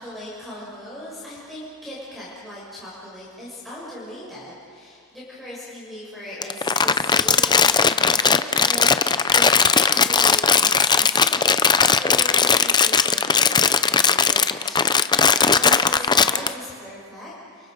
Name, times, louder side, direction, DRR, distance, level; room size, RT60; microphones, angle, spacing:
voice 1, 0.0-11.5 11.9-17.7, left 1 dB, ahead, -9 dB, 6.4 m, -38 dB
Crumpling crinkling, 6.4-16.5, left 5 dB, 20° left, 0.6 m, -18 dB
29.5 x 29.0 x 5.3 m, 2.3 s
head